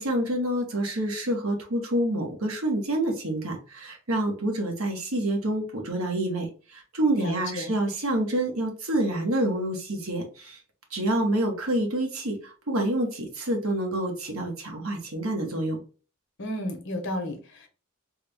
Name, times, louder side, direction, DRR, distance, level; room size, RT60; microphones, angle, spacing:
voice 1, 0.0-10.6 10.9-15.8, right 1 dB, 75° right, 1.2 m, -27 dB
voice 2, 7.2-7.7 16.4-17.7, left 1 dB, 60° left, 1.0 m, -33 dB
3.5 x 2.2 x 3.4 m
head